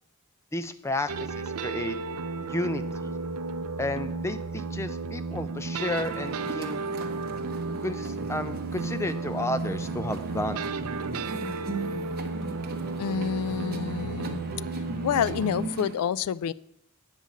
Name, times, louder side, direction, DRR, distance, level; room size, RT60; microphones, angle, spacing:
voice 1, 0.5-2.0 2.5-3.1 3.8-6.8 7.8-10.6, left 1 dB, 10° left, 0.4 m, -32 dB
sound 1, 1.1-15.7, right 4 dB, 75° right, 0.5 m, -33 dB
sound 2, 5.7-15.9, right 2 dB, 45° right, 1.0 m, -39 dB
voice 2, 13.0-14.4 15.0-16.5, left 8 dB, 85° left, 0.3 m, -28 dB
9.0 x 5.6 x 7.3 m
head